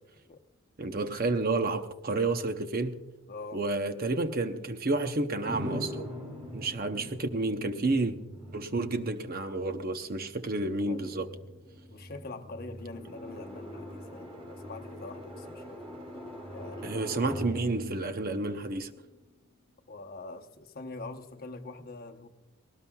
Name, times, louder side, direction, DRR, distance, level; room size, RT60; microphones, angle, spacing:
voice 1, 0.8-3.0 3.5-6.1 6.5-8.2 8.5-11.3 16.8-18.9, right 2 dB, 40° right, 0.7 m, -30 dB
voice 2, 3.3-3.6 10.8-11.3 11.9-17.0 19.9-22.3, left 3 dB, 40° left, 0.9 m, -44 dB
sound 1, 5.4-19.2, equal, 25° right, 4.4 m, -43 dB
20.0 x 18.5 x 2.3 m
head